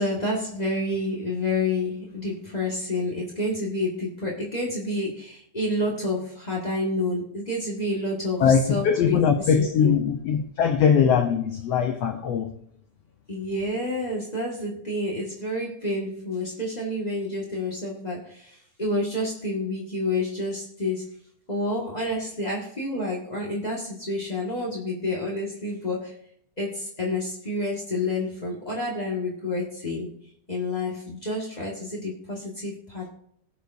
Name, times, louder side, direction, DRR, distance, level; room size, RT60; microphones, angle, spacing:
voice 1, 0.0-9.2 9.6-10.0 13.3-21.2 21.5-26.2 26.6-30.1 30.5-33.1, left 2 dB, 30° left, -3 dB, 0.7 m, -29 dB
voice 2, 8.4-12.5, left 7 dB, 90° left, 6 dB, 1.4 m, -21 dB
19.0 x 6.7 x 2.7 m, 0.70 s
omnidirectional pair, 4.0 m